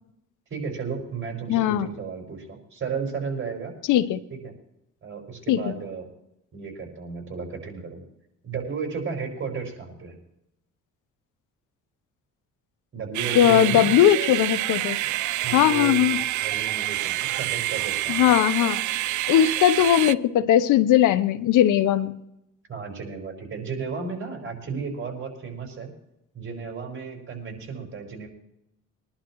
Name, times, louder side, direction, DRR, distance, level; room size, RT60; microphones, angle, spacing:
voice 1, 0.5-3.7 4.3-4.5 5.0-6.1 6.5-8.0 8.4-10.2 12.9-13.9 15.4-18.3 22.7-25.9 26.3-28.3, right 5 dB, 40° right, 2 dB, 5.3 m, -34 dB
voice 2, 1.5-1.9 3.9-4.2 5.5-5.7 13.3-15.0 15.5-16.2 18.1-18.8 19.3-22.1, left 11 dB, 85° left, 14 dB, 0.8 m, -19 dB
sound 1, 13.1-20.1, right 16 dB, 75° right, 0.5 m, -27 dB
23.0 x 11.5 x 3.1 m, 0.83 s
cardioid pair, 90°, 30 cm